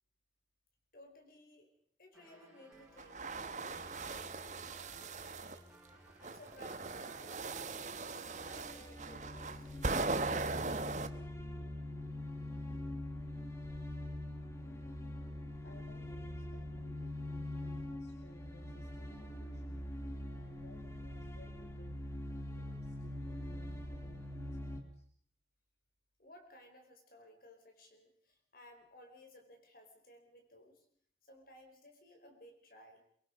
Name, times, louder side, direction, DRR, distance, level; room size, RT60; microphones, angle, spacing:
voice 1, 0.9-1.7 2.0-5.7 6.2-7.7 8.1-9.7 26.2-30.8 31.2-33.0, left 1 dB, 55° left, 4 dB, 4.8 m, -58 dB
sound 1, 2.1-7.4, right 1 dB, 5° right, 5.5 m, -60 dB
sound 2, 3.0-5.6 6.2-11.1, right 3 dB, 40° right, 1.1 m, -39 dB
sound 3, 8.3-24.8, left 1 dB, 15° left, 2.0 m, -43 dB
voice 2, 15.6-22.0 22.3-25.0, left 1 dB, 75° left, 3 dB, 2.4 m, -61 dB
23.5 x 23.0 x 5.3 m, 0.62 s
head